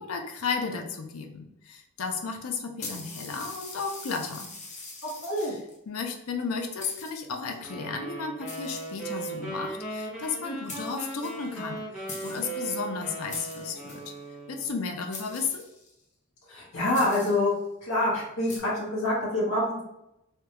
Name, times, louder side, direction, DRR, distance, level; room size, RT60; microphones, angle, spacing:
voice 1, 0.0-4.5 5.4-14.0 14.5-15.6, left 5 dB, 75° left, 5 dB, 0.5 m, -34 dB
sound 1, 2.8-5.8 6.4-6.5 6.8-7.5 8.5-9.4 10.4-10.5 10.7-11.8 12.1-12.6 13.3-14.2 15.1-16.0 16.9-17.5 18.5-18.6, left 3 dB, 30° left, 0.6 m, -43 dB
voice 2, 5.2-5.5 16.5-17.5 17.8-19.8, left 1 dB, 55° left, -6 dB, 1.1 m, -26 dB
sound 2, 7.6-14.8, right 2 dB, ahead, 0.8 m, -38 dB
3.4 x 2.3 x 2.9 m, 0.85 s
head